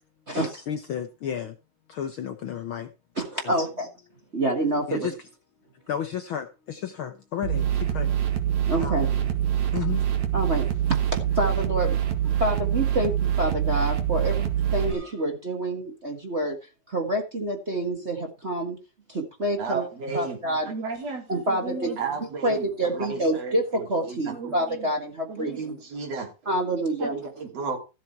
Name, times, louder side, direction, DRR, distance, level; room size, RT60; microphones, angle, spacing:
voice 1, 0.3-1.5 1.9-2.9 3.4-3.5 4.9-5.1 5.9-8.2 8.8-9.3 9.7-10.0, left 9 dB, 75° left, 1.1 m, -32 dB
voice 2, 3.1-3.9 4.3-5.1 8.7-9.1 10.3-10.7 11.3-16.6 16.9-18.8 19.1-20.7 21.3-21.9 22.2-25.8 26.4-27.2, right 1 dB, 30° right, 1.3 m, -27 dB
sound 1, 7.4-14.9, right 10 dB, 70° right, 3.0 m, -25 dB
voice 3, 19.6-20.4 20.6-24.9 25.3-26.3 27.0-27.8, right 4 dB, 55° right, 4.0 m, -34 dB
14.5 x 7.6 x 4.5 m
omnidirectional pair, 3.4 m